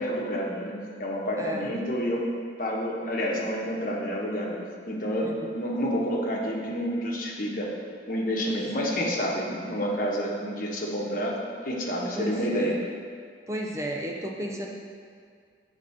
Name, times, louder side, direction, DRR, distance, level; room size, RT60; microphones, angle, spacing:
voice 1, 0.0-2.3 2.6-4.6 4.9-7.7 8.1-11.4 11.6-12.8, equal, 45° left, -2 dB, 1.1 m, -29 dB
voice 2, 1.4-1.7 5.2-5.5 8.5-8.9 12.2-12.8 13.5-14.7, equal, 15° right, -1 dB, 0.5 m, -34 dB
7.9 x 3.8 x 5.6 m, 2.1 s
head